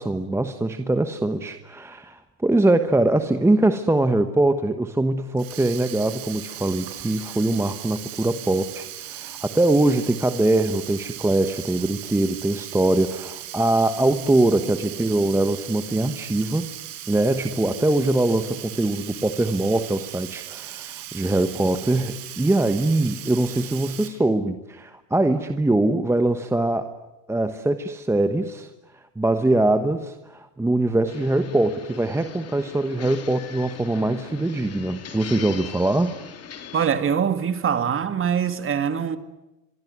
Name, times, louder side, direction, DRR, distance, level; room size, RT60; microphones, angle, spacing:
voice 1, 0.0-16.7 17.1-26.9 27.3-28.7 29.2-36.1, right 2 dB, 5° right, 1.1 m, -22 dB
Sink (filling or washing), 5.2-24.1, right 13 dB, 55° right, 5.7 m, -38 dB
sound 1, 31.1-36.9, left 8 dB, 30° left, 3.4 m, -40 dB
voice 2, 36.7-39.2, right 7 dB, 25° right, 2.2 m, -23 dB
25.0 x 25.0 x 9.4 m
supercardioid pair, 115°, 49 cm